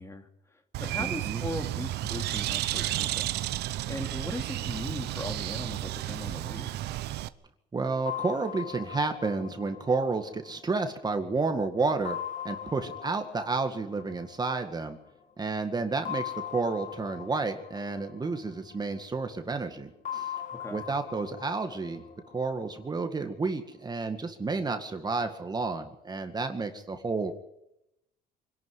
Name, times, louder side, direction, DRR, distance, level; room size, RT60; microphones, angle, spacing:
voice 1, 0.0-3.3 3.9-6.8 20.5-20.8, left 2 dB, 15° left, 6 dB, 2.8 m, -39 dB
Bird, 0.7-7.3, right 15 dB, 75° right, 1.0 m, -32 dB
voice 2, 1.0-1.4 7.7-12.2 12.4-15.0 15.4-20.3 20.7-22.0 22.3-27.3, right 3 dB, 25° right, 6 dB, 1.9 m, -31 dB
sound 1, 8.1-11.4 12.1-15.0 16.1-19.2 20.1-23.2, left 9 dB, 50° left, 2.4 m, -41 dB
25.0 x 12.0 x 9.8 m, 0.85 s
cardioid pair, 110°, 17 cm